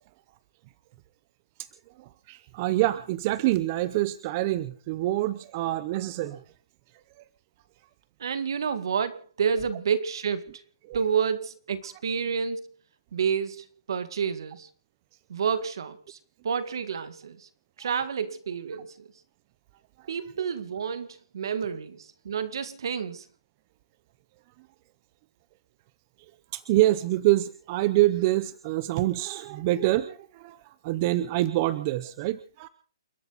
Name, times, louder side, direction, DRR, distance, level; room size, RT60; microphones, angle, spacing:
voice 1, 2.0-6.4 10.9-11.0 26.5-32.7, right 16 dB, 25° right, 0.7 m, -26 dB
voice 2, 8.2-10.6 10.9-12.6 13.1-14.7 15.3-16.2 16.4-17.5 17.8-19.1 20.1-21.1 21.3-23.3, right 6 dB, 60° right, 1.9 m, -29 dB
29.0 x 11.5 x 4.0 m
hypercardioid pair, 170°, 3 cm